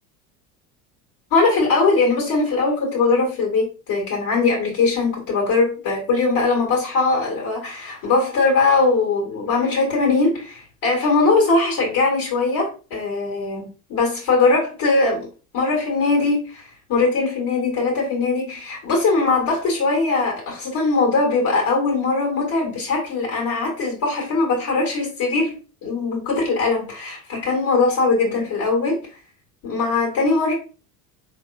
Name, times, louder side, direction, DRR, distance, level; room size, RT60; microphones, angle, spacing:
voice 1, 1.3-15.3 15.5-29.0 29.6-30.5, left 3 dB, 50° left, 2.1 m, -20 dB
3.6 x 3.4 x 2.7 m
hypercardioid pair, 75°, 45 cm